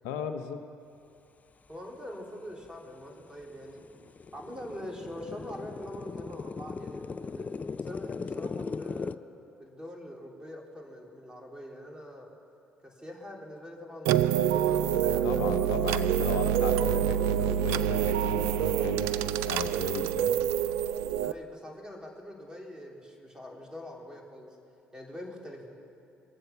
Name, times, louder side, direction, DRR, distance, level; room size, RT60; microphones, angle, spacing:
voice 1, 0.0-0.6 15.2-19.2 19.5-20.4, left 7 dB, 80° left, 7 dB, 0.8 m, -36 dB
voice 2, 1.7-3.8 4.3-7.5 7.8-9.2 9.6-12.3 12.8-15.4 15.8-16.4 21.2-24.6 24.9-25.7, equal, 15° right, -1 dB, 3.3 m, -43 dB
sound 1, 2.7-2.8 3.2-9.1, left 5 dB, 30° left, 0.4 m, -38 dB
sound 2, 14.0-21.3, right 10 dB, 80° right, 0.4 m, -26 dB
22.5 x 7.8 x 5.9 m, 2.6 s
hypercardioid pair, 55°, 5 cm